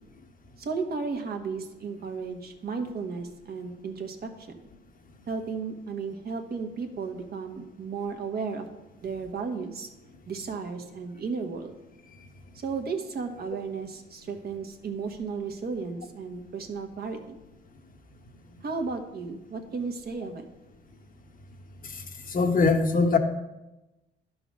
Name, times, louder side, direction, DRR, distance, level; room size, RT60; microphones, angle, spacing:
voice 1, 0.6-4.6 5.3-8.6 9.0-9.9 10.3-11.7 12.5-17.4 18.6-20.5, right 5 dB, 50° right, 5 dB, 1.2 m, -34 dB
voice 2, 22.3-23.2, left 4 dB, 45° left, 5 dB, 1.1 m, -22 dB
11.0 x 4.0 x 6.1 m, 1.0 s
cardioid pair, 90°, 20 cm